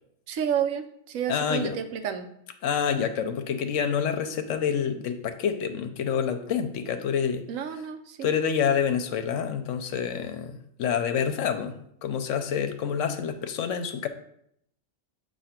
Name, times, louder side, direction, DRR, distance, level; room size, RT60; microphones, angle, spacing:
voice 1, 0.3-2.3 7.5-8.3, right 8 dB, 85° right, 7 dB, 1.0 m, -30 dB
voice 2, 1.3-1.7 2.6-7.4 8.2-14.1, left 7 dB, 75° left, 8 dB, 0.9 m, -27 dB
7.7 x 2.8 x 5.7 m, 0.72 s
omnidirectional pair, 1.3 m